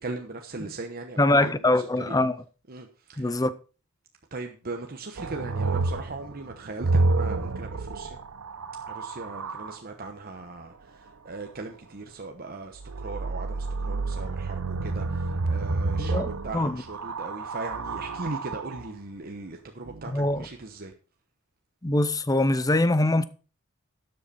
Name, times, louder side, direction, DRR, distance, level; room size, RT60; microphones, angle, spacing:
voice 1, 0.0-1.5 2.0-2.3 2.7-3.4 4.3-8.2 8.9-20.9, right 3 dB, 45° right, 1.0 m, -38 dB
voice 2, 1.2-2.4 3.2-3.5 16.0-16.8 20.1-20.5 21.8-23.2, left 2 dB, 15° left, 0.6 m, -23 dB
sound 1, 5.2-9.8 12.8-18.9 19.9-20.5, right 3 dB, 85° right, 0.8 m, -29 dB
12.5 x 7.8 x 4.2 m
head